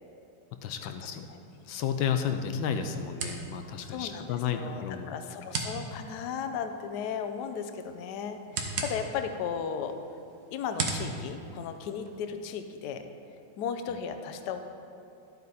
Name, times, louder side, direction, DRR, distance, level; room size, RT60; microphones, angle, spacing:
voice 1, 0.6-1.3 1.7-5.1, left 7 dB, 85° left, 6 dB, 1.4 m, -32 dB
sound 1, 1.4-12.4, right 4 dB, 60° right, 1.4 m, -40 dB
voice 2, 3.9-9.9 10.5-13.1 13.6-14.6, left 7 dB, 65° left, 7 dB, 1.1 m, -35 dB
12.5 x 8.5 x 4.2 m, 2.5 s
omnidirectional pair, 2.1 m